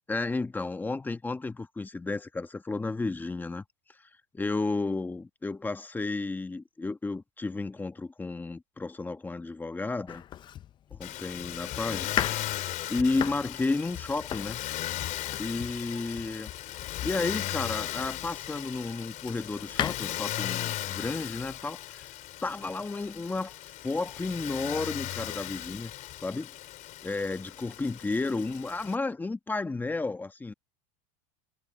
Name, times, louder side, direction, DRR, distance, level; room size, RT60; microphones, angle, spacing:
voice 1, 0.1-3.6 4.3-10.2 10.9-12.6 12.9-14.6 15.4-16.5 17.0-22.1 22.4-23.5 23.8-25.9 26.2-26.5 27.0-30.5, left 3 dB, 10° left, 1.1 m, -32 dB
Domestic sounds home sounds, 10.1-18.2 18.8-19.9, left 10 dB, 25° left, 0.4 m, -37 dB
Motor vehicle (road), 11.0-29.0, left 14 dB, 45° left, 2.9 m, -37 dB
supercardioid pair, 130°, 17 cm